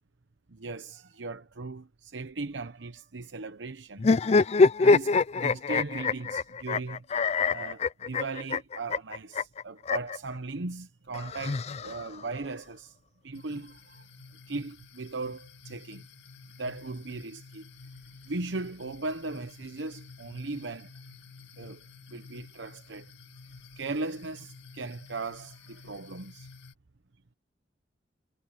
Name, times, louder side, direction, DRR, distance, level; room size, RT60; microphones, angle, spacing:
voice 1, 0.5-4.1 4.6-7.0 7.5-12.9 13.2-14.1 14.5-16.1 16.6-17.7 18.2-20.9 21.6-23.1 23.8-26.5, right 3 dB, 80° right, 0.9 m, -38 dB
sound 1, 4.0-10.2 11.1-12.3, left 4 dB, 35° left, 0.4 m, -25 dB
sound 2, 13.3-26.7, left 4 dB, 80° left, 1.9 m, -51 dB
head